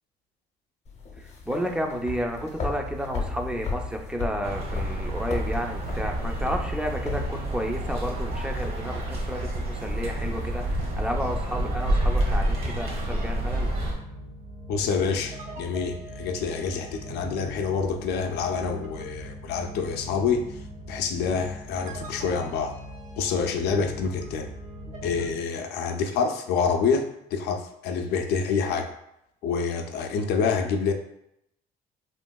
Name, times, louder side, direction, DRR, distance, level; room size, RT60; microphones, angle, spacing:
sound 1, 0.9-10.8, left 3 dB, 40° left, 0.7 m, -36 dB
voice 1, 1.2-13.7, equal, 5° right, 2 dB, 0.3 m, -32 dB
sound 2, 4.4-13.9, right 1 dB, 65° right, 0.9 m, -28 dB
sound 3, 11.1-25.3, equal, 45° right, 0.6 m, -40 dB
voice 2, 14.7-20.6 20.9-22.7 23.2-24.5 25.0-28.9 29.4-30.9, left 5 dB, 75° left, 5 dB, 0.4 m, -27 dB
3.0 x 2.7 x 2.2 m, 0.78 s
cardioid pair, 110°, 17 cm